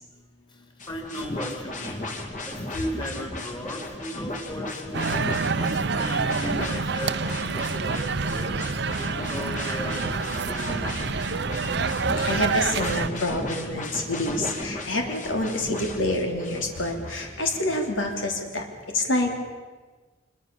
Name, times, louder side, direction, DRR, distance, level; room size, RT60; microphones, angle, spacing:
voice 1, 0.5-5.2 5.5-8.7 9.0-11.4, equal, 25° left, 3 dB, 3.6 m, -37 dB
sound 1, 0.8-18.1, left 1 dB, 40° left, 2.6 m, -35 dB
sound 2, 4.9-13.1, right 4 dB, 60° right, 0.8 m, -27 dB
voice 2, 12.2-19.4, left 1 dB, 85° left, 3 dB, 3.5 m, -27 dB
25.5 x 23.0 x 7.1 m, 1.4 s
head